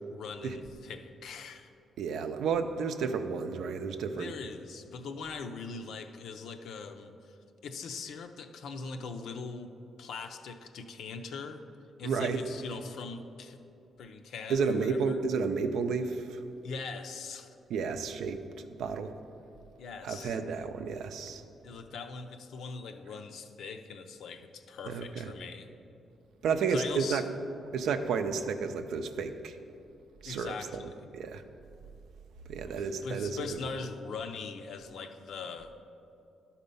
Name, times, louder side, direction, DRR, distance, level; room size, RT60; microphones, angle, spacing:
voice 1, 0.1-1.7 4.1-7.4 7.6-11.6 12.0-13.6 14.0-15.2 16.6-17.5 19.8-20.4 21.6-25.7 26.7-27.2 30.2-31.1 32.7-35.8, left 4 dB, 80° left, 7 dB, 0.5 m, -41 dB
voice 2, 2.0-4.3 12.0-12.4 14.5-16.4 17.7-19.1 20.0-21.4 24.9-25.3 26.4-27.2 27.7-29.6 30.2-30.5 31.1-31.4 32.5-33.7, right 5 dB, 85° right, 8 dB, 0.5 m, -31 dB
11.5 x 4.3 x 5.4 m, 2.7 s
cardioid pair, 95°, 0 cm